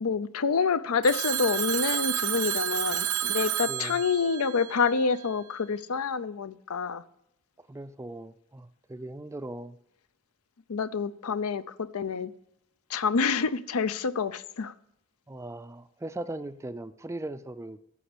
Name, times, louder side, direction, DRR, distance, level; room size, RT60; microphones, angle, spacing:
voice 1, 0.0-7.0 10.7-12.3 12.9-14.7, left 5 dB, 80° left, 15 dB, 0.5 m, -27 dB
Telephone, 1.0-5.3, right 11 dB, 85° right, 0.7 m, -30 dB
voice 2, 3.7-4.0 7.6-9.8 15.3-17.8, right 1 dB, 15° right, 13 dB, 0.3 m, -39 dB
13.0 x 5.1 x 8.7 m, 0.79 s
head